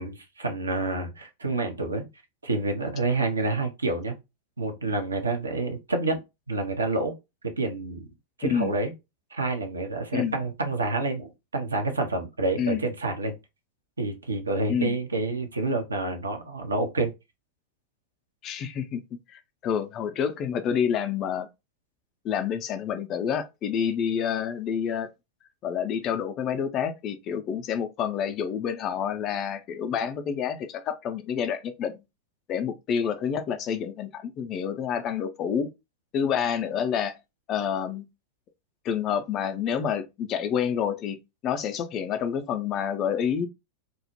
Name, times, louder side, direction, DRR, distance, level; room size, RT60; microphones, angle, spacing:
voice 1, 0.0-2.0 2.4-4.1 4.6-6.2 6.5-7.1 7.4-8.1 8.4-8.9 9.3-13.3 14.0-17.1, right 2 dB, 75° right, 0.5 m, -28 dB
voice 2, 8.4-8.7 10.1-10.4 12.6-12.8 14.7-14.9 18.4-19.0 19.3-21.5 22.2-25.1 25.6-32.0 32.5-35.7 36.1-37.2 37.5-38.0 38.8-41.2 41.4-43.5, left 8 dB, 35° left, 0.4 m, -28 dB
2.2 x 2.0 x 2.9 m
figure-of-eight pair, 90°, 0 cm